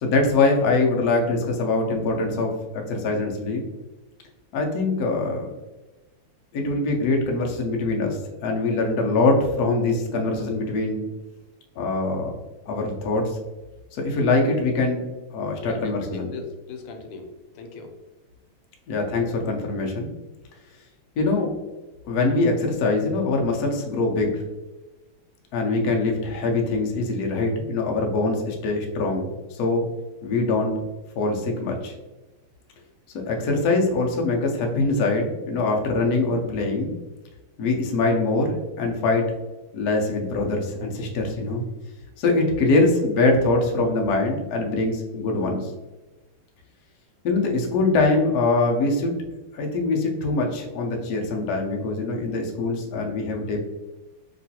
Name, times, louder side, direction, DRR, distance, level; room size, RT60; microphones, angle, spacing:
voice 1, 0.0-3.6 4.5-5.5 6.5-11.0 11.8-12.3 12.7-13.4 14.0-15.0 15.3-16.3 18.9-20.1 21.2-21.5 22.0-24.4 25.5-29.8 30.2-30.8 31.2-31.9 33.3-36.9 37.6-39.3 39.7-41.6 42.2-45.7 47.2-49.1 49.5-53.6, left 3 dB, 70° left, 1 dB, 0.9 m, -23 dB
voice 2, 15.6-17.3 17.5-17.9, left 4 dB, 85° left, 5 dB, 1.4 m, -38 dB
3.1 x 2.9 x 2.8 m, 1.1 s
omnidirectional pair, 2.3 m